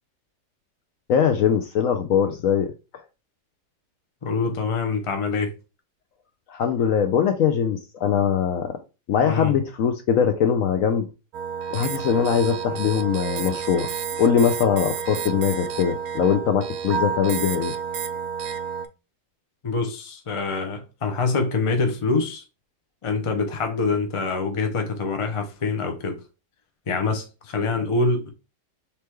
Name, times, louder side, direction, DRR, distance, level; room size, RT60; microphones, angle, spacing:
voice 1, 1.1-2.7 6.5-8.7 9.1-11.1 11.7-13.9 14.2-17.7, left 7 dB, 70° left, 0.8 m, -21 dB
voice 2, 4.2-5.5 9.2-9.5 19.6-22.4 23.0-26.2 26.9-28.3, left 3 dB, 50° left, 0.3 m, -25 dB
sound 1, 11.3-18.9, right 7 dB, 70° right, 0.9 m, -30 dB
4.4 x 3.4 x 3.0 m
omnidirectional pair, 1.8 m